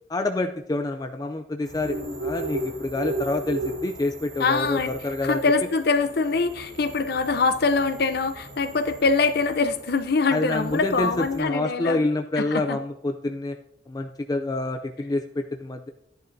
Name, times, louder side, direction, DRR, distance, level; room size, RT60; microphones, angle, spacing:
voice 1, 0.1-5.4 10.3-13.6 13.9-15.9, left 2 dB, 20° left, 5 dB, 0.4 m, -27 dB
sound 1, 1.6-11.4, right 1 dB, 75° right, 2.9 m, -36 dB
voice 2, 4.4-4.9 5.2-12.1 12.4-12.8, left 4 dB, 55° left, 10 dB, 0.7 m, -24 dB
13.5 x 10.5 x 2.7 m, 0.80 s
head